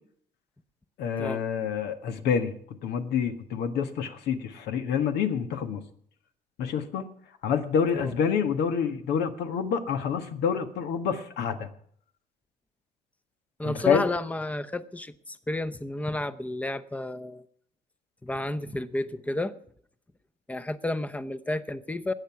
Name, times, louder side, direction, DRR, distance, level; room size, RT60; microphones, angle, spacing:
voice 1, 1.0-2.5 2.8-5.8 6.6-7.0 7.4-11.7 13.6-14.1, left 7 dB, 75° left, 7 dB, 1.6 m, -27 dB
voice 2, 13.6-17.4 18.2-19.6 20.5-22.1, left 2 dB, 10° left, 13 dB, 0.8 m, -31 dB
19.5 x 8.3 x 5.9 m, 0.62 s
cardioid pair, 110°, 17 cm